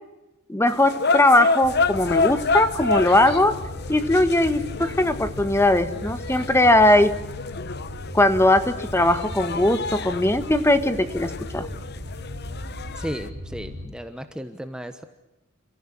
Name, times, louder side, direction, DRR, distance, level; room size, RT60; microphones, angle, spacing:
voice 1, 0.5-3.6 3.9-7.1 8.1-11.7, left 1 dB, 10° left, 11 dB, 1.3 m, -19 dB
sound 1, 0.7-13.3, left 4 dB, 50° left, 1.1 m, -29 dB
sound 2, 1.6-13.9, left 1 dB, 50° right, 5.7 m, -37 dB
voice 2, 12.9-15.0, equal, 5° right, 8 dB, 1.1 m, -34 dB
29.5 x 15.0 x 9.9 m, 1.0 s
head